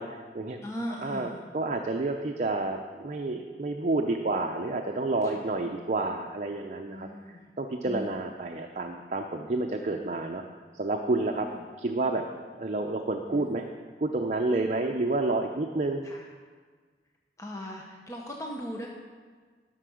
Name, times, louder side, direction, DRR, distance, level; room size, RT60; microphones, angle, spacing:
voice 1, 0.0-0.6 0.9-10.4 10.7-11.5 11.8-12.2 12.6-13.6 14.0-16.0, right 2 dB, 40° right, 3 dB, 0.6 m, -29 dB
voice 2, 0.6-1.4 6.9-7.5 7.9-8.1 11.2-11.3 17.4-18.9, equal, 20° left, -1 dB, 0.9 m, -37 dB
11.5 x 6.7 x 6.3 m, 1.5 s
head